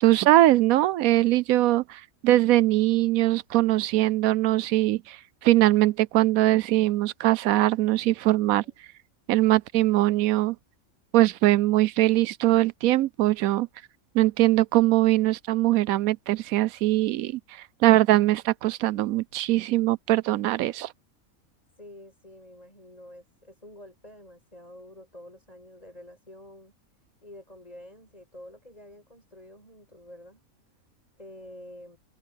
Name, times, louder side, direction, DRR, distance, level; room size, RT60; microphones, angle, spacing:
voice 1, 0.0-8.6 9.3-10.6 11.1-13.7 14.1-17.4 17.8-20.9, right 15 dB, 85° right, 1.0 m, -21 dB
voice 2, 21.8-26.7 27.2-30.4 31.2-32.0, left 1 dB, 25° left, 7.7 m, -48 dB
open air
omnidirectional pair, 1.5 m